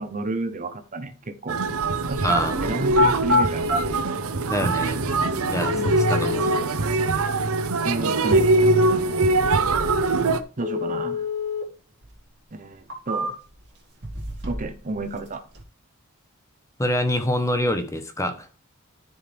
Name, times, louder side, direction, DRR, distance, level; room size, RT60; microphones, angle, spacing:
voice 1, 0.0-1.6 2.1-3.8 5.7-5.9 7.8-8.5 10.6-11.3 12.5-13.3 14.5-15.4, right 2 dB, 40° right, 0.9 m, -31 dB
sound 1, 1.5-10.4, right 2 dB, 80° right, 0.8 m, -22 dB
voice 2, 2.2-2.6 4.5-5.0 5.4-5.7 6.1-6.5 16.8-18.5, left 1 dB, 15° left, 1.1 m, -25 dB
sound 2, 2.2-2.4 2.9-3.8 4.8-4.9 5.6-6.6 10.6-11.6 12.0-12.1 12.7-13.6 14.0-14.7 15.0-15.6, left 3 dB, 55° right, 2.7 m, -25 dB
13.0 x 4.9 x 3.5 m
head